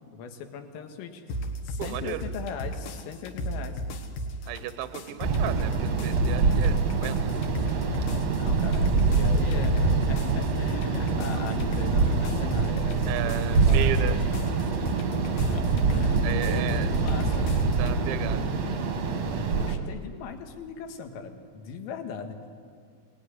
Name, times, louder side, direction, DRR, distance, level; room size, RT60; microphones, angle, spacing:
voice 1, 0.1-1.2 1.6-3.8 8.4-14.2 15.5-17.5 19.5-22.5, left 6 dB, 90° left, 5 dB, 4.3 m, -39 dB
sound 1, 1.3-18.0, right 1 dB, 60° left, 2.7 m, -35 dB
voice 2, 1.8-2.2 4.5-7.2 13.1-14.2 16.2-16.9 17.8-18.5, right 13 dB, 75° right, 11 dB, 2.9 m, -34 dB
sound 2, 5.2-19.8, right 4 dB, 60° right, 1.8 m, -25 dB
25.0 x 19.0 x 9.8 m, 2.1 s
omnidirectional pair, 5.7 m